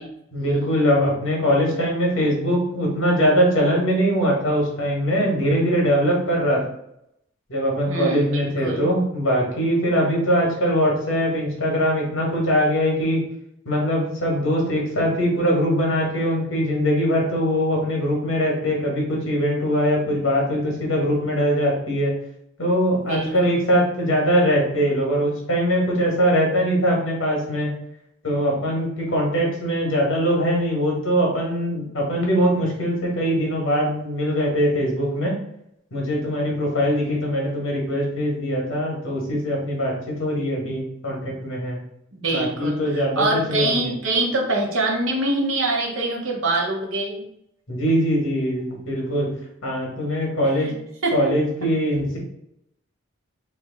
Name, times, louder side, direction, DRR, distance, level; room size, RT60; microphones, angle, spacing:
voice 1, 0.3-6.6 7.5-13.2 13.6-22.1 22.6-27.7 28.2-35.3 35.9-41.8 42.3-43.9 47.7-49.3 49.6-50.7 51.1-52.2, equal, 80° left, -2 dB, 1.4 m, -22 dB
voice 2, 7.9-8.9 23.0-23.5 42.1-47.2 50.6-50.7 51.0-51.2, right 2 dB, 75° right, -1 dB, 0.9 m, -24 dB
3.1 x 2.6 x 3.9 m, 0.76 s
head